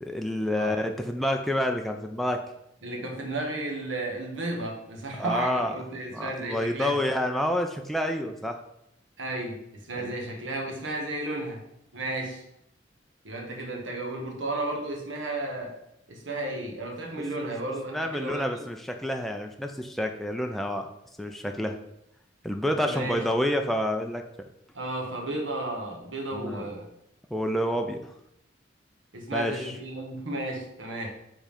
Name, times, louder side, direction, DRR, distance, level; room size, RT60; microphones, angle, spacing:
voice 1, 0.0-2.4 5.2-5.7 6.1-8.6 10.0-10.1 17.9-20.9 21.2-21.8 22.4-24.2 26.3-26.7 27.3-28.1 29.3-29.7, left 1 dB, ahead, 3 dB, 0.4 m, -28 dB
voice 2, 2.8-7.0 9.2-11.6 11.9-12.4 13.2-15.7 16.1-18.6 22.8-23.3 24.7-26.9 29.1-31.1, right 2 dB, 90° right, 1 dB, 1.4 m, -33 dB
5.2 x 3.7 x 5.0 m, 0.79 s
head